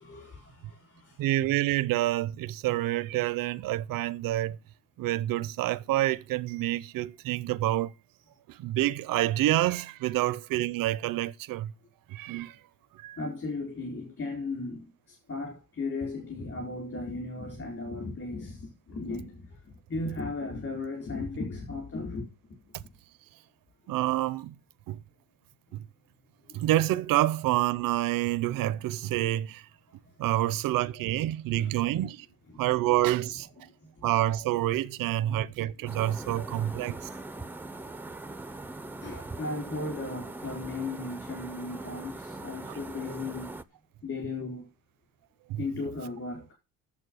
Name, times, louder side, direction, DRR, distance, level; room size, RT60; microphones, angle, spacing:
voice 1, 0.0-1.3 13.2-22.3 26.5-26.6 31.6-31.8 32.5-32.7 34.0-34.1 35.2-35.4 35.8-35.9 36.5-37.0 39.0-43.5 44.0-44.7 45.6-46.5, left 3 dB, 45° left, 4.5 m, -36 dB
voice 2, 1.2-4.6 5.0-7.9 8.5-11.7 12.1-12.6 13.0-13.2 23.9-24.5 24.9-25.0 26.5-29.6 30.2-32.3 32.6-33.5 34.0-37.0 45.5-45.6, right 14 dB, 80° right, 0.7 m, -27 dB
sound 1, 35.9-43.6, right 2 dB, 5° right, 0.5 m, -41 dB
8.8 x 7.4 x 6.2 m
cardioid pair, 145°, 33 cm